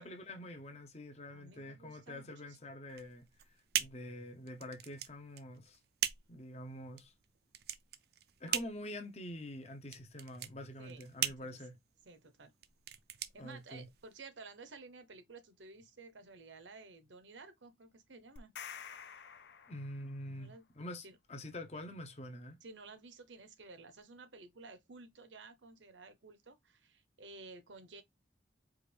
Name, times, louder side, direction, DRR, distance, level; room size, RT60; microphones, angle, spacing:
voice 1, 0.0-5.8 6.3-7.1 8.4-11.8 13.4-13.9 19.7-22.6, left 1 dB, 35° left, 0.8 m, -46 dB
voice 2, 1.3-2.6 10.8-11.6 12.1-12.5 13.3-18.5 20.3-20.6 21.0-21.2 22.6-28.0, right 3 dB, 85° right, 0.9 m, -54 dB
sound 1, 2.9-14.2, right 11 dB, 55° right, 0.4 m, -40 dB
sound 2, 18.4-20.3, left 7 dB, 65° left, 0.6 m, -49 dB
4.8 x 2.5 x 3.3 m
head